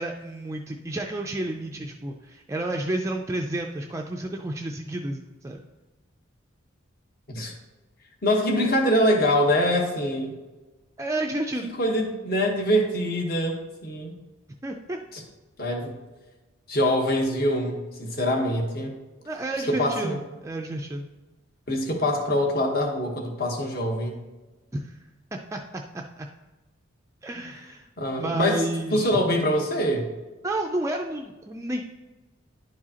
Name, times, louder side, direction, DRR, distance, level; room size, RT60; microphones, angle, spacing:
voice 1, 0.0-5.6 11.0-11.7 14.6-15.0 19.3-21.1 24.7-25.0 25.3-26.3 27.2-27.9 28.2-29.2 30.4-31.8, right 1 dB, 15° right, 1 dB, 0.3 m, -31 dB
voice 2, 8.2-10.3 11.8-14.1 15.1-15.2 15.6-15.9 16.7-19.0 19.7-20.2 21.7-24.2 28.0-28.7 28.9-30.1, equal, 45° left, 1 dB, 1.1 m, -24 dB
11.0 x 4.8 x 2.8 m, 1.2 s
head